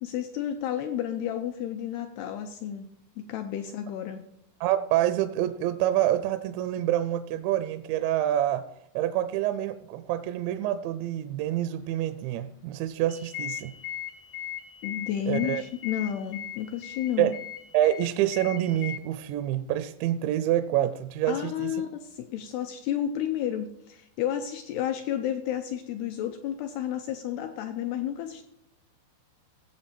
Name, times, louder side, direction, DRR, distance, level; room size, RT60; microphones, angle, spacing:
voice 1, 0.0-2.9 3.2-4.2 14.8-17.3 21.3-28.4, left 10 dB, 90° left, 6 dB, 2.3 m, -31 dB
voice 2, 4.6-8.7 9.0-13.7 15.3-15.6 17.2-17.3 17.7-21.7, right 12 dB, 80° right, 11 dB, 2.7 m, -27 dB
sound 1, 13.1-19.0, left 11 dB, 75° left, 2.0 m, -39 dB
17.0 x 7.7 x 4.4 m, 0.78 s
omnidirectional pair, 5.4 m